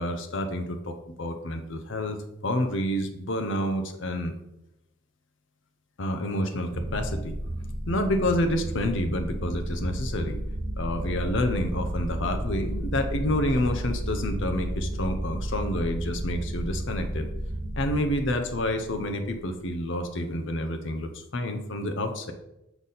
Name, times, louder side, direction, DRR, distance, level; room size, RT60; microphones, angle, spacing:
voice 1, 0.0-2.2 2.4-4.3 6.0-7.3 7.9-10.4 10.8-17.3 17.8-22.3, left 1 dB, 60° left, 6 dB, 0.7 m, -28 dB
sound 1, 6.7-19.6, right 1 dB, 55° right, 0.8 m, -32 dB
6.9 x 3.9 x 4.0 m, 0.86 s
head